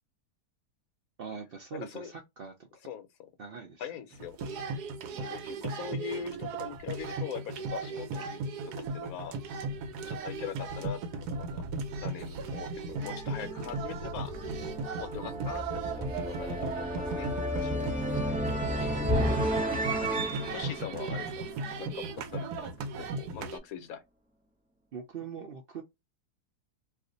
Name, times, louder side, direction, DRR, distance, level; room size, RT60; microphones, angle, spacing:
voice 1, 1.2-2.5 3.4-3.8 24.9-25.8, right 6 dB, 65° right, 0.5 m, -42 dB
voice 2, 1.8-2.1 2.8-3.1 3.8-4.4 5.1-9.4 10.1-11.6 11.9-14.3 15.0-18.4 18.8-18.9 20.5-21.4 21.7-22.7 23.0-24.0, left 8 dB, 70° left, 1.1 m, -42 dB
sound 1, 4.1-23.6, right 3 dB, 85° right, 1.1 m, -37 dB
sound 2, 12.9-22.0, equal, 5° right, 1.1 m, -33 dB
2.5 x 2.5 x 3.7 m
omnidirectional pair, 1.6 m